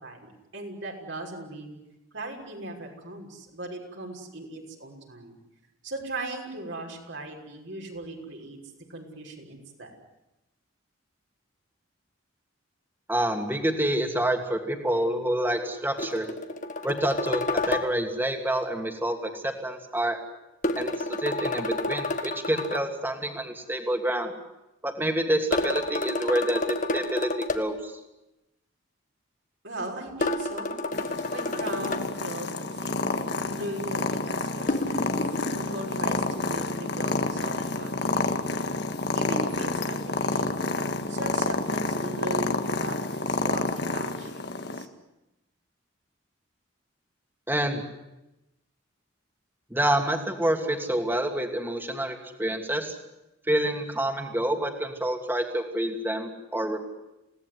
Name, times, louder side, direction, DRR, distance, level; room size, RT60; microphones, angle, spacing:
voice 1, 0.0-1.7 2.1-5.4 5.8-8.6 8.9-10.0 29.6-30.8 31.3-35.2 35.5-38.6 39.1-40.7 41.1-44.4 44.7-44.9, right 2 dB, 65° right, 0 dB, 6.2 m, -39 dB
voice 2, 13.1-16.3 16.8-20.2 20.8-20.9 21.2-24.3 24.8-27.9 47.5-47.8 49.7-53.0 53.5-56.9, right 1 dB, 10° right, 4 dB, 2.9 m, -27 dB
sound 1, 16.0-17.9 20.6-22.9 25.5-27.6 30.2-32.0 34.7-35.6, left 2 dB, 40° left, 1.7 m, -29 dB
Purr, 30.9-44.8, left 3 dB, 55° left, 1.7 m, -29 dB
28.0 x 18.0 x 9.8 m, 0.94 s
head